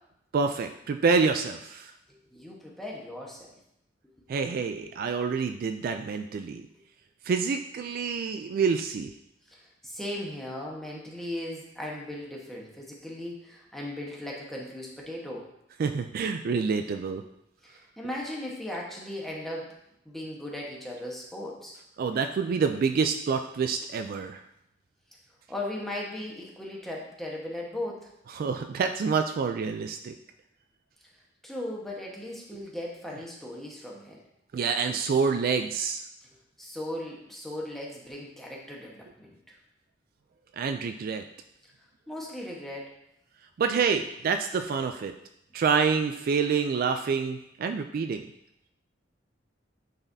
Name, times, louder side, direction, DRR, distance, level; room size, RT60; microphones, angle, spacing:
voice 1, 0.3-1.9 4.3-6.6 7.2-9.1 15.8-17.2 22.0-24.4 28.3-30.2 34.5-36.0 40.6-41.2 43.6-45.1 45.5-48.2, right 5 dB, 50° right, 7 dB, 0.3 m, -27 dB
voice 2, 2.3-3.5 9.5-15.4 17.6-19.7 20.0-21.8 25.5-28.1 31.4-34.2 36.6-39.5 42.1-42.9, left 1 dB, ahead, -3 dB, 1.1 m, -37 dB
8.9 x 4.1 x 2.7 m, 0.78 s
head